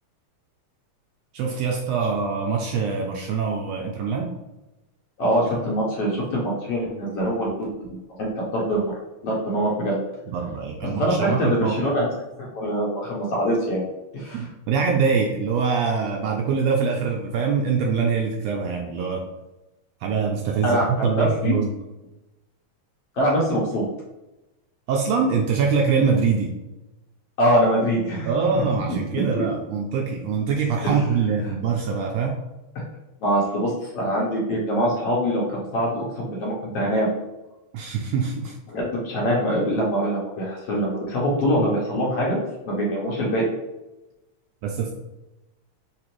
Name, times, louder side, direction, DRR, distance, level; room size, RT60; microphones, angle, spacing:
voice 1, 1.3-4.4 10.3-11.8 14.3-19.3 20.0-21.7 24.9-26.6 28.2-32.4 37.7-38.5 44.6-44.9, right 5 dB, 80° right, 1 dB, 1.5 m, -24 dB
voice 2, 5.2-8.9 9.2-10.0 10.8-12.1 12.4-13.8 14.1-14.5 20.6-21.6 23.1-23.8 27.4-28.3 29.3-29.4 30.8-31.0 33.2-37.1 38.7-42.4 42.7-43.5, equal, 65° left, -4 dB, 1.7 m, -23 dB
6.7 x 2.4 x 3.0 m, 0.99 s
omnidirectional pair, 3.4 m